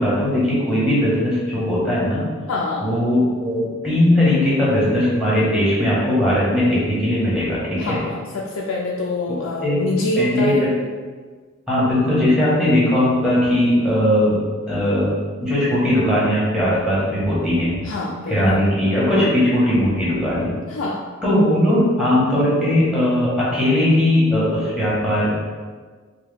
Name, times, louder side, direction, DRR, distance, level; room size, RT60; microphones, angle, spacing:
voice 1, 0.0-2.3 2.8-8.0 9.6-9.8 10.2-10.6 11.7-14.4 14.6-15.1 15.4-17.8 18.3-20.5 21.2-25.3, left 1 dB, 5° right, -8 dB, 1.2 m, -19 dB
voice 2, 2.5-2.8 7.8-10.7 17.8-18.6 19.2-19.3 20.7-21.0, left 2 dB, 75° left, -2 dB, 0.4 m, -26 dB
4.6 x 2.2 x 3.4 m, 1.5 s
head